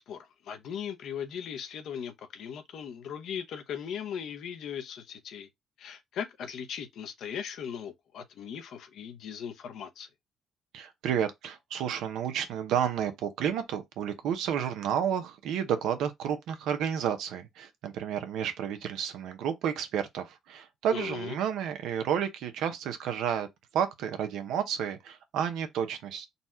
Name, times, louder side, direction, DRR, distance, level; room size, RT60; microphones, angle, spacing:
voice 1, 0.0-5.5 5.8-10.1 20.9-21.4, left 8 dB, 75° left, 0.8 m, -38 dB
voice 2, 10.7-23.5 23.7-26.3, right 8 dB, 85° right, 0.8 m, -31 dB
4.1 x 2.4 x 4.3 m
cardioid pair, 90°, 0 cm